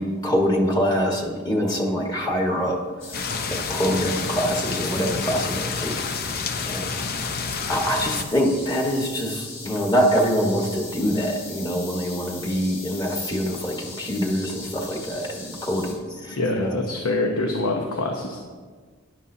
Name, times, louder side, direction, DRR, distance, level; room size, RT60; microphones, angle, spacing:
voice 1, 0.0-2.8 3.5-6.0 6.6-7.4 7.7-16.9, equal, 20° left, 0 dB, 1.5 m, -25 dB
sound 1, 3.0-15.9, left 3 dB, 65° left, 3.0 m, -39 dB
sound 2, 3.1-8.2, left 5 dB, 45° left, 0.6 m, -29 dB
voice 2, 16.3-18.4, left 2 dB, 85° left, 2 dB, 1.0 m, -25 dB
12.5 x 11.0 x 2.8 m, 1.5 s
head